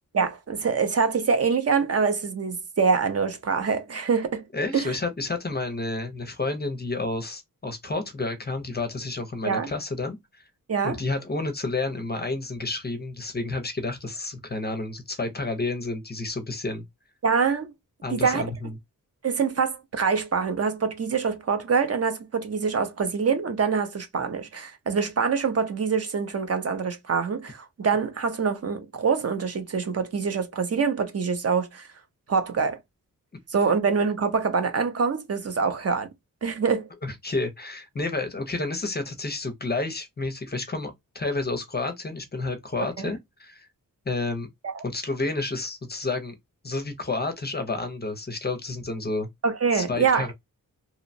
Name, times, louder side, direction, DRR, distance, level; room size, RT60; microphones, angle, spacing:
voice 1, 0.1-4.4 4.7-5.0 9.4-9.7 10.7-11.0 17.2-17.7 18.1-18.5 19.2-31.9 32.3-32.8 33.5-36.1 36.4-36.9 43.0-43.1 44.6-44.8 49.4-50.3, right 5 dB, 45° right, 0.6 m, -25 dB
voice 2, 4.5-10.4 10.8-16.8 18.0-18.7 37.0-43.7 44.1-44.5 44.8-46.3 46.6-49.3 49.7-50.3, left 3 dB, 30° left, 0.5 m, -30 dB
2.8 x 2.1 x 2.5 m
wide cardioid pair, 170°, 34 cm